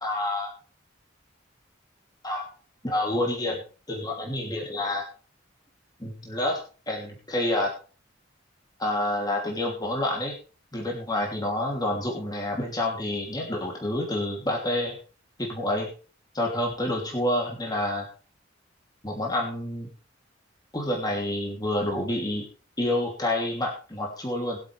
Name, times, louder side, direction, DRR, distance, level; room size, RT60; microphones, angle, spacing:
voice 1, 0.0-0.5 2.2-2.5 2.8-3.6 3.9-5.0 6.0-6.6 6.9-7.7 8.8-10.3 10.7-14.9 15.4-15.9 16.3-18.0 19.0-19.9 20.7-22.4 22.8-24.6, left 1 dB, 20° left, -1 dB, 2.9 m, -28 dB
22.0 x 8.0 x 3.4 m, 0.35 s
head